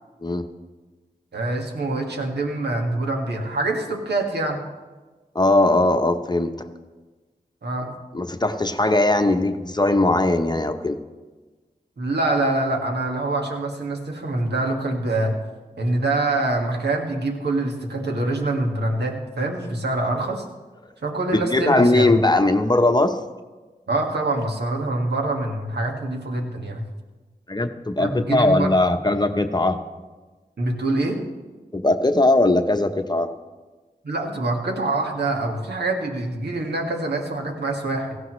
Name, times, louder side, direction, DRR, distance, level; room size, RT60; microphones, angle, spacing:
voice 1, 1.3-4.6 7.6-7.9 12.0-15.4 15.8-20.4 21.0-22.1 23.9-26.9 28.0-28.8 30.6-31.2 34.0-38.2, right 2 dB, 85° right, 1 dB, 2.0 m, -25 dB
voice 2, 5.3-6.7 8.1-11.0 21.3-23.2 27.5-29.8 31.7-33.3, left 2 dB, 25° left, 6 dB, 0.9 m, -19 dB
17.5 x 16.0 x 3.2 m, 1.3 s
cardioid pair, 50°, 17 cm